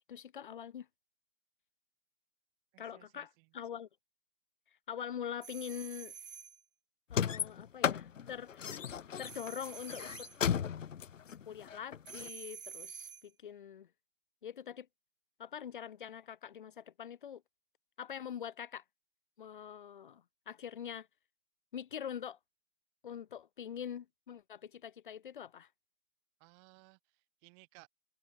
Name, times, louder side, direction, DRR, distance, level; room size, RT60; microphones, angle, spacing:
voice 1, 0.1-0.9 2.8-3.9 4.9-6.1 7.1-8.9 9.2-10.3 11.3-13.9 14.4-14.9 15.4-17.4 18.0-18.8 19.4-21.1 21.7-22.4 23.0-25.7, left 8 dB, 40° left, 2.2 m, -44 dB
voice 2, 2.7-3.4 26.4-27.9, right 40 dB or more, 15° right, 1.5 m, -61 dB
sound 1, 5.4-6.6 9.2-10.4 12.1-13.3, right 7 dB, 45° right, 0.5 m, -48 dB
sound 2, 7.1-12.3, left 8 dB, 75° left, 0.7 m, -35 dB
figure-of-eight pair, 150°, 38 cm